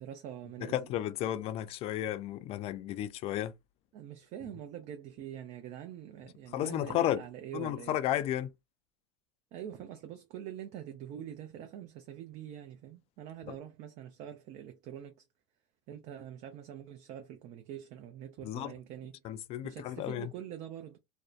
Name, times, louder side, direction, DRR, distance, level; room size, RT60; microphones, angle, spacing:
voice 1, 0.0-0.9 3.9-8.0 9.5-15.2 15.9-19.2 19.6-21.0, right 10 dB, 45° right, 0.5 m, -45 dB
voice 2, 0.6-3.5 6.5-7.2 7.5-8.5 13.5-13.6 18.4-18.7 19.2-20.3, left 12 dB, 40° left, 0.4 m, -33 dB
2.6 x 2.1 x 2.3 m
supercardioid pair, 110°, 16 cm